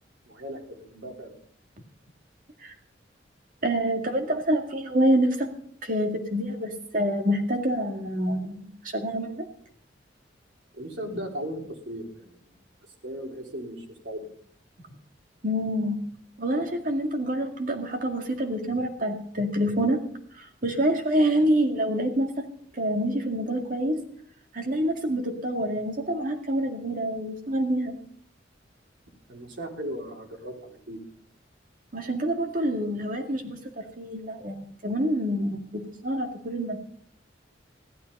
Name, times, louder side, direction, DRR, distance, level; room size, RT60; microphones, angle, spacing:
voice 1, 0.3-1.4 10.7-12.5 13.0-14.3 29.3-31.0, equal, 90° right, 1 dB, 3.6 m, -37 dB
voice 2, 3.6-5.5 5.8-9.5 15.4-16.0 16.4-20.0 20.4-22.4 22.7-24.0 24.5-28.0 31.9-36.8, right 1 dB, 50° right, 4 dB, 2.1 m, -27 dB
15.0 x 12.0 x 5.4 m, 0.63 s
head